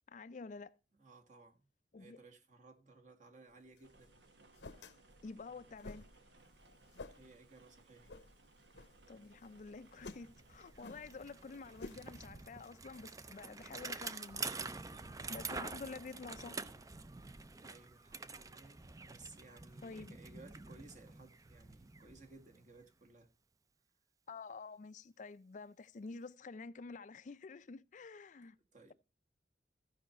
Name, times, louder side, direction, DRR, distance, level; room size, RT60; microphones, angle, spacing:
voice 1, 0.1-0.7 1.9-2.2 5.2-6.0 9.1-14.6 15.3-16.6 19.8-20.2 24.3-28.6, left 4 dB, 45° left, 0.4 m, -49 dB
voice 2, 0.9-1.7 1.9-4.2 7.1-8.1 17.6-23.3 28.4-28.9, right 3 dB, 45° right, 1.5 m, -59 dB
sound 1, 3.5-14.2, left 3 dB, 85° left, 0.9 m, -55 dB
sound 2, 3.8-12.3, right 2 dB, 85° right, 1.3 m, -64 dB
Bicycle, 9.6-9.7 10.0-22.9, right 4 dB, 20° right, 0.5 m, -47 dB
15.0 x 5.6 x 4.2 m
head